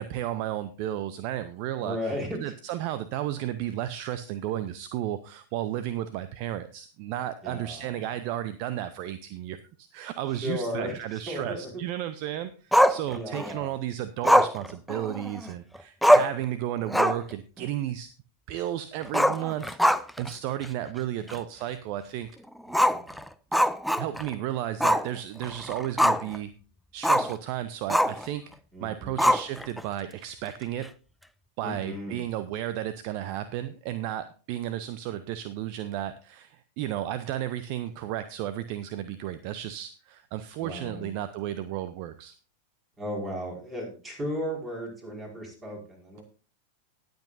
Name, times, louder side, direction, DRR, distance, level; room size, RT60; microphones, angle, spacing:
voice 1, 0.0-18.1 18.5-22.3 23.5-26.5 26.9-28.4 28.8-30.9 31.6-42.3, right 12 dB, 45° right, 13 dB, 0.6 m, -33 dB
voice 2, 1.8-2.4 7.4-8.1 10.3-11.8 12.9-13.7 22.7-23.2 28.7-29.3 31.6-32.2 40.6-41.1 43.0-46.2, left 1 dB, 20° right, 0 dB, 5.0 m, -35 dB
Growling, 12.7-13.5 14.2-15.5 15.8-15.9 16.0-16.4 16.8-17.3 17.6-17.7 19.1-20.3 20.6-20.7 21.3-21.4 22.7-24.3 24.8-25.1 25.4-26.4 27.0-27.3 27.9-28.3 29.2-29.8, equal, ahead, 0.5 m, -22 dB
19.0 x 7.9 x 2.6 m, 0.36 s
figure-of-eight pair, 90°, 0 cm